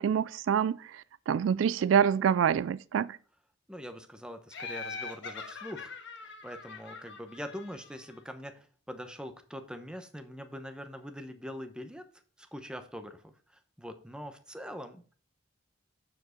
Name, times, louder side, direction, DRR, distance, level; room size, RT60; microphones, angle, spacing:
voice 1, 0.0-3.2, right 7 dB, 70° right, 0.3 m, -26 dB
voice 2, 3.7-6.0 6.2-12.1 12.4-15.1, equal, 5° right, 0.9 m, -43 dB
Laughter, 4.5-8.2, left 4 dB, 65° left, 1.6 m, -43 dB
8.7 x 5.0 x 5.1 m
head